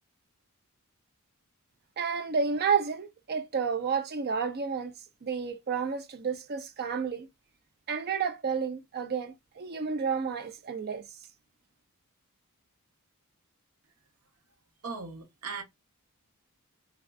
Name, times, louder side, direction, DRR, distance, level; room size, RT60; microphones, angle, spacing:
voice 1, 2.0-4.9 5.2-7.3 7.9-11.1, right 6 dB, 45° right, 0.5 m, -31 dB
voice 2, 14.8-15.6, right 4 dB, 85° right, 0.8 m, -38 dB
3.5 x 2.3 x 2.3 m
head